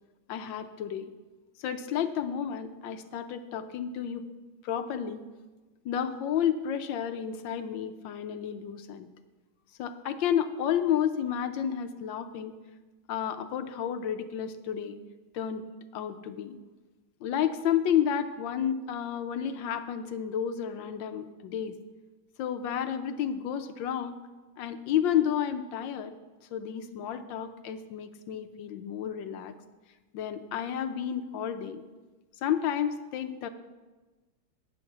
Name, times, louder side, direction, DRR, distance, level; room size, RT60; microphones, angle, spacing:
voice 1, 0.3-1.1 1.6-4.3 4.6-5.2 5.8-9.1 9.8-12.6 13.1-15.0 15.3-15.6 15.9-16.6 17.2-21.7 22.4-24.2 24.6-26.1 26.5-29.5 30.1-31.8 32.4-33.5, left 9 dB, 75° left, 9 dB, 1.3 m, -31 dB
9.9 x 6.4 x 7.2 m, 1.2 s
omnidirectional pair, 2.2 m